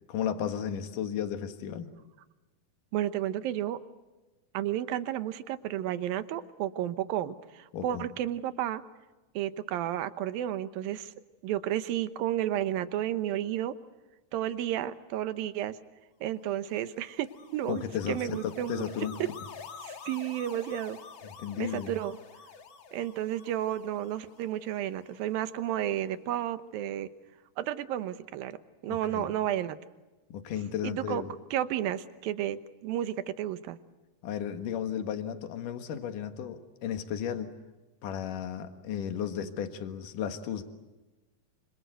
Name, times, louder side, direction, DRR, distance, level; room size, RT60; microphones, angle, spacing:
voice 1, 0.1-1.9 7.7-8.0 17.7-19.2 21.2-21.9 28.9-29.3 30.3-31.3 34.2-37.5 38.0-40.6, left 9 dB, 70° left, 7 dB, 3.1 m, -34 dB
voice 2, 2.9-3.8 4.5-8.8 9.3-11.1 11.4-13.8 14.3-15.8 16.2-18.9 19.2-19.3 19.8-21.0 21.6-22.2 22.9-27.1 27.6-28.6 28.8-29.8 30.8-31.2 31.5-33.8, right 12 dB, 85° right, 12 dB, 2.8 m, -32 dB
sound 1, 16.5-25.8, left 6 dB, 50° left, 1.7 m, -49 dB
26.5 x 26.0 x 8.0 m, 1.1 s
omnidirectional pair, 4.0 m